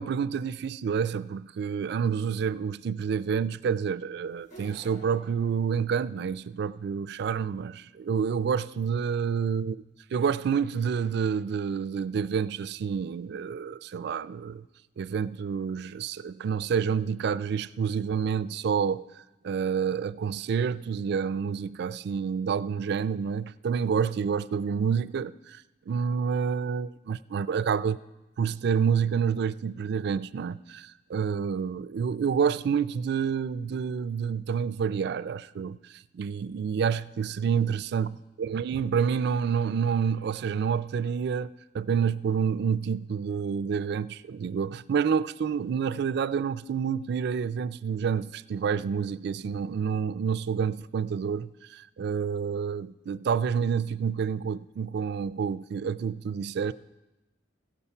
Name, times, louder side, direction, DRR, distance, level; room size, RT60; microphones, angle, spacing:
voice 1, 0.0-9.8 10.1-14.6 15.0-28.0 28.4-41.5 41.7-56.7, right 6 dB, 60° right, 0.3 m, -28 dB
sound 1, 4.4-6.4, equal, 40° left, 2.2 m, -51 dB
15.5 x 7.1 x 5.5 m
head